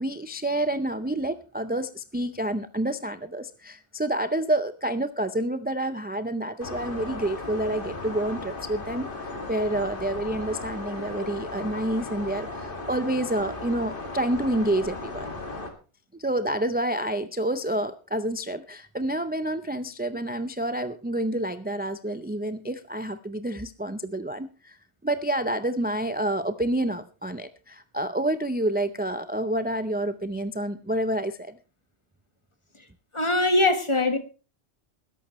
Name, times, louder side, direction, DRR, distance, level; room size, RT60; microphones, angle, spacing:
voice 1, 0.0-15.3 16.1-24.8 25.0-31.6, right 1 dB, 15° right, 10 dB, 0.3 m, -28 dB
sound 1, 6.6-15.7, left 2 dB, 50° left, 2.2 m, -36 dB
voice 2, 33.1-34.2, left 2 dB, 25° left, 8 dB, 1.5 m, -22 dB
20.0 x 11.5 x 3.1 m, 0.34 s
omnidirectional pair, 1.2 m